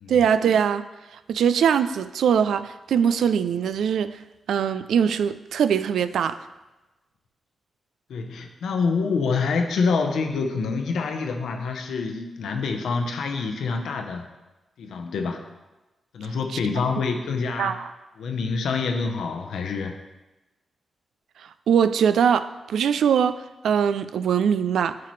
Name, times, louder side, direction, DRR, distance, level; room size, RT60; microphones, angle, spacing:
voice 1, 0.1-0.8 1.3-4.2 4.5-6.4 17.6-17.9 21.7-25.0, right 7 dB, 80° right, 12 dB, 0.3 m, -22 dB
voice 2, 8.1-14.2 14.8-15.4 16.1-17.8 18.2-20.0, left 4 dB, 80° left, 5 dB, 0.8 m, -26 dB
9.3 x 5.8 x 3.2 m, 1.1 s
supercardioid pair, 50°, 0 cm